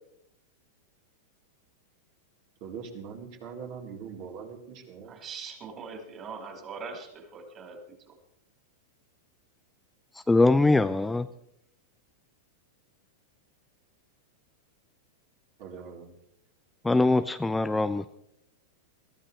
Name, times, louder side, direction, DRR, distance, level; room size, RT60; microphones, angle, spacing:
voice 1, 2.6-5.2 15.6-16.1, right 6 dB, 50° right, 0 dB, 4.0 m, -42 dB
voice 2, 5.1-7.8 8.1-8.2, right 5 dB, 30° right, 3 dB, 4.7 m, -41 dB
voice 3, 10.3-11.3 16.8-18.2, left 2 dB, 10° left, 11 dB, 0.5 m, -22 dB
22.0 x 14.0 x 3.3 m, 0.78 s
hypercardioid pair, 100°, 0 cm